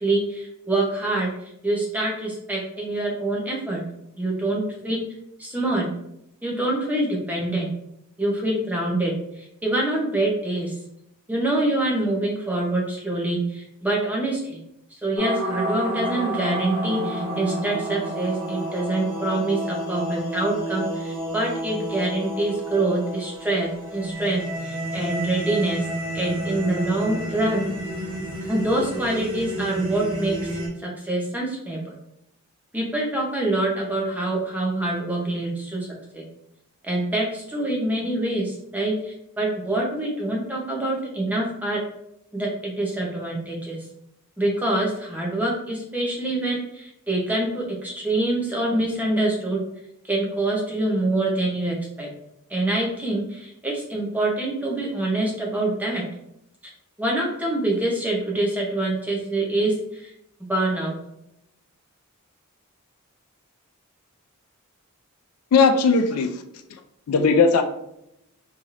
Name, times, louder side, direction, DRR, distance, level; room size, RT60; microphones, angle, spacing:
voice 1, 0.0-1.3 1.6-3.8 4.2-5.0 5.4-5.9 6.4-7.7 8.2-9.1 9.6-10.7 11.3-14.6 15.0-25.8 26.1-27.7 28.4-30.3 30.8-31.8 32.7-35.9 36.1-36.2 36.8-41.8 42.3-43.8 44.4-49.6 50.1-52.1 52.5-56.0 57.0-60.1 60.5-60.9, right 2 dB, 5° right, -3 dB, 0.6 m, -25 dB
sound 1, 15.2-30.7, right 1 dB, 90° right, 1.0 m, -30 dB
voice 2, 65.5-66.3 67.1-67.6, left 4 dB, 80° left, 7 dB, 0.4 m, -17 dB
3.1 x 2.8 x 2.4 m, 0.79 s
head